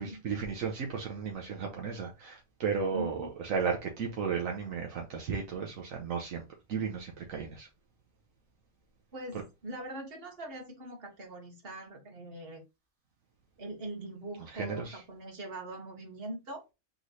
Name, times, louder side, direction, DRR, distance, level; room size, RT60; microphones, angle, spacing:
voice 1, 0.0-6.4 6.7-7.7 14.5-15.0, right 6 dB, 70° right, 1.2 m, -34 dB
voice 2, 2.9-3.3 9.1-12.6 13.6-16.6, right 1 dB, 45° right, 1.7 m, -42 dB
3.8 x 3.2 x 4.0 m
omnidirectional pair, 1.5 m